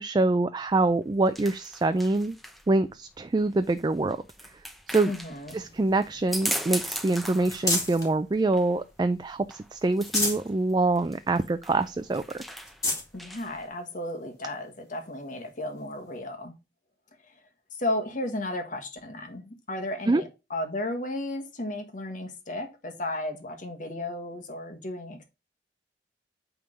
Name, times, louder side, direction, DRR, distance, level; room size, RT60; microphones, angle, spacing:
voice 1, 0.0-2.4 2.7-4.2 4.9-5.1 5.5-12.4 20.1-20.2, right 2 dB, 25° right, 0.3 m, -25 dB
sound 1, 0.7-13.7, equal, ahead, 0.7 m, -39 dB
voice 2, 5.1-5.6 13.1-16.5 17.2-17.3 17.7-25.2, left 1 dB, 45° left, 1.4 m, -34 dB
sound 2, 5.5-8.1 8.7-9.4 9.8-10.5 11.0-11.1 11.4-11.5 12.1-12.2 12.6-13.1 13.9-14.0 15.8-15.9, left 2 dB, 20° left, 2.1 m, -32 dB
8.7 x 3.6 x 5.2 m
head